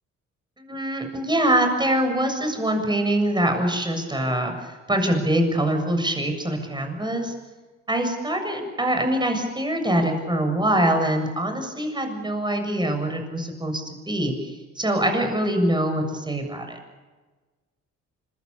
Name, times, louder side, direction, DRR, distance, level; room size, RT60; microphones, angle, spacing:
voice 1, 0.6-7.3 7.9-14.5 14.8-16.8, right 1 dB, 15° right, 5 dB, 7.4 m, -24 dB
26.5 x 22.0 x 7.1 m, 1.3 s
cardioid pair, 90°, 30 cm